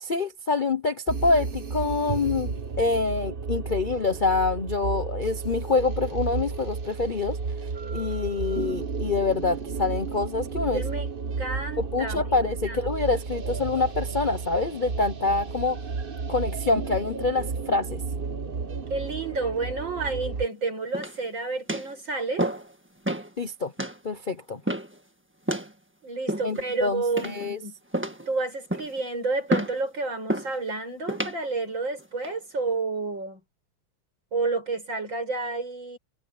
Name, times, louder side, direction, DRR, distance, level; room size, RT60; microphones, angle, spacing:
voice 1, 0.0-7.4 7.9-10.8 11.8-15.8 16.3-18.0 23.4-23.7 24.0-24.6 26.4-27.6, left 3 dB, 85° left, 0.4 m, -26 dB
sound 1, 1.1-20.5, right 5 dB, 35° right, 1.0 m, -32 dB
voice 2, 10.7-11.1 11.4-12.2 12.6-12.8 18.9-22.5 26.0-27.7 28.3-33.4 34.3-36.0, right 3 dB, 60° right, 7.9 m, -30 dB
sound 2, 20.9-21.3 21.7-21.9 22.4-22.7 23.0-23.3 23.8-24.0 24.7-25.0 25.5-25.7 26.3-26.7 27.2-27.5 27.9-28.3 28.7-29.0 29.5-29.8 30.3-30.5 31.1-31.4 32.0-32.3, right 1 dB, 5° right, 1.3 m, -29 dB
omnidirectional pair, 2.3 m